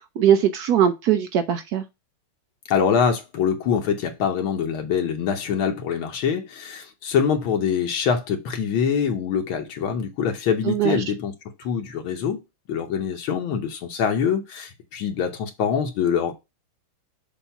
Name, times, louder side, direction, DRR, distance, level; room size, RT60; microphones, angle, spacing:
voice 1, 0.0-1.8 10.7-11.0, right 9 dB, 75° right, 0.9 m, -20 dB
voice 2, 2.7-11.3 11.6-12.4 12.7-16.3, left 7 dB, 75° left, 1.7 m, -24 dB
7.0 x 2.7 x 5.6 m
omnidirectional pair, 2.3 m